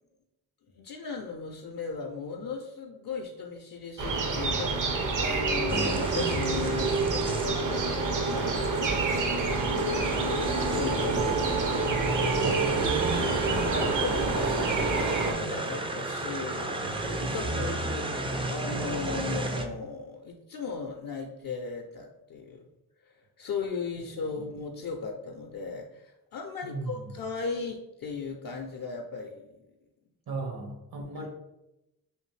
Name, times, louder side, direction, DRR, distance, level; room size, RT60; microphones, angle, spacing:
voice 1, 0.7-9.0 10.6-11.5 12.2-12.6 13.1-14.6 14.9-22.7 23.0-29.5 31.2-31.3, left 4 dB, 60° left, 2 dB, 0.5 m, -37 dB
sound 1, 4.0-15.3, right 3 dB, 55° right, 0.6 m, -28 dB
sound 2, 5.7-19.7, right 2 dB, 15° right, 0.3 m, -33 dB
voice 2, 26.6-27.1 30.3-31.3, right 3 dB, 70° right, 1 dB, 1.1 m, -35 dB
3.2 x 2.6 x 3.1 m, 0.92 s
cardioid pair, 80°, 38 cm